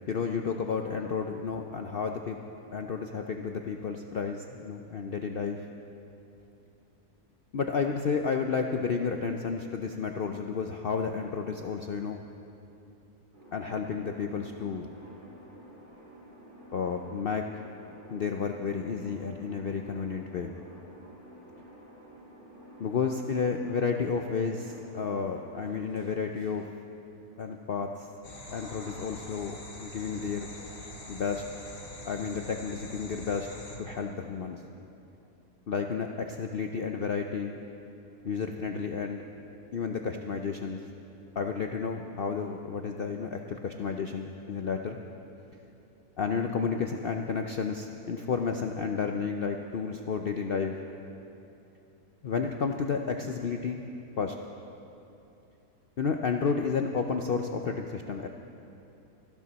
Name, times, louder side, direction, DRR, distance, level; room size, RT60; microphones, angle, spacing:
voice 1, 0.1-2.4 2.7-5.6 7.5-12.2 13.5-14.9 16.7-17.5 18.1-20.5 22.8-26.7 27.4-28.1 28.5-30.5 31.1-31.4 32.1-33.5 33.8-34.6 35.7-37.5 38.2-39.2 39.7-40.8 41.4-45.0 46.2-50.7 52.2-53.9 54.2-54.4 56.0-58.3, left 5 dB, 70° left, 4 dB, 0.5 m, -31 dB
sound 1, 13.3-25.7, right 1 dB, 30° right, 4.0 m, -51 dB
sound 2, 28.2-33.8, left 2 dB, 55° left, 2.4 m, -44 dB
18.0 x 14.0 x 4.1 m, 2.9 s
omnidirectional pair, 1.7 m